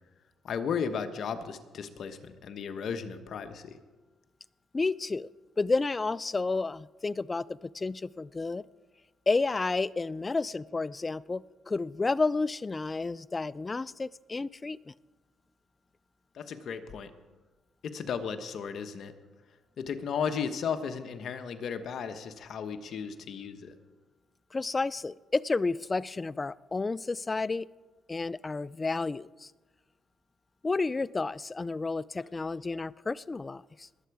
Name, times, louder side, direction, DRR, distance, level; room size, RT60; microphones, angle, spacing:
voice 1, 0.4-3.8 16.3-17.1 17.8-19.1 19.8-23.7, left 6 dB, 60° left, 8 dB, 1.1 m, -35 dB
voice 2, 4.7-5.3 5.6-8.7 9.3-14.9 24.5-27.7 28.1-29.5 30.6-33.9, left 3 dB, 25° left, 20 dB, 0.3 m, -31 dB
20.5 x 7.9 x 4.8 m, 1.2 s
cardioid pair, 90°, 0 cm